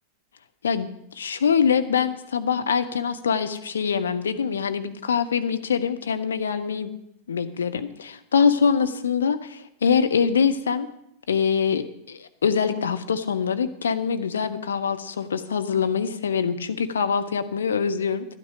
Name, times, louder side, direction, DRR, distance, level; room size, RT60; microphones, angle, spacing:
voice 1, 1.2-6.9 7.3-10.9 11.3-18.3, left 6 dB, 70° left, 9 dB, 0.9 m, -24 dB
12.5 x 10.5 x 5.0 m, 0.79 s
figure-of-eight pair, 90°, 0 cm